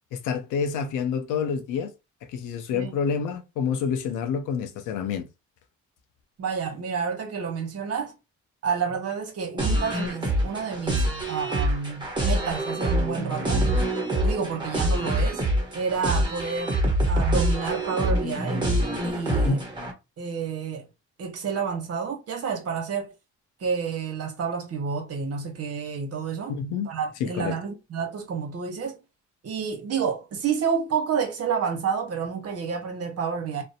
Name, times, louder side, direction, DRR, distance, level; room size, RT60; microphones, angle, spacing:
voice 1, 0.2-1.9 2.3-5.2 19.4-19.6 26.5-26.9 27.2-27.6, left 6 dB, 90° left, 0.6 m, -28 dB
voice 2, 6.4-8.1 8.6-13.7 14.2-15.4 15.7-16.8 17.1-18.7 19.0-19.6 20.2-20.9 21.2-23.1 23.6-26.6 26.8-29.0 29.4-33.6, right 6 dB, 55° right, 0.9 m, -29 dB
sound 1, 9.6-19.9, right 1 dB, 15° right, 1.1 m, -25 dB
2.5 x 2.0 x 2.7 m
cardioid pair, 90°, 30 cm